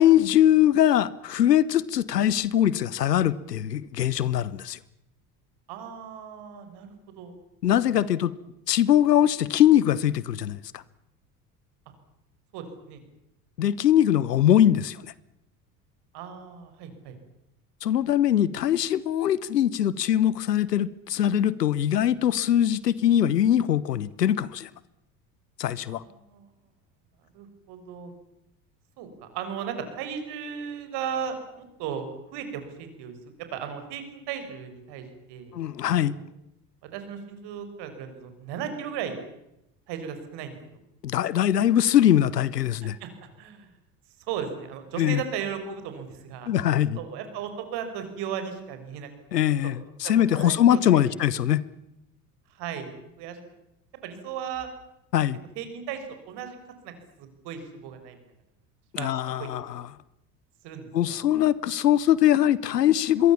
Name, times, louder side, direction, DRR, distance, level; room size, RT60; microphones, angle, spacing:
voice 1, 0.0-4.8 7.6-8.3 8.7-10.8 13.6-15.1 17.8-24.7 25.6-26.0 35.5-36.2 41.0-43.0 45.0-45.2 46.5-47.0 49.3-51.6 55.1-55.4 59.0-59.8 60.9-63.3, left 11 dB, 75° left, 20 dB, 1.2 m, -22 dB
voice 2, 5.7-6.9 7.2-7.3 8.0-8.1 12.5-13.0 14.3-14.4 16.1-17.2 25.9-26.5 27.3-28.1 29.0-32.1 32.3-33.1 33.5-35.6 35.9-36.2 36.9-39.2 39.9-40.8 42.8-43.1 43.4-43.7 44.3-46.5 47.0-49.7 50.0-51.0 52.5-53.4 54.0-54.7 55.6-56.6 56.8-58.2 59.0-59.7 60.6-61.2, right 7 dB, 55° right, 8 dB, 5.9 m, -36 dB
26.5 x 23.0 x 7.2 m, 0.85 s
figure-of-eight pair, 65°, 48 cm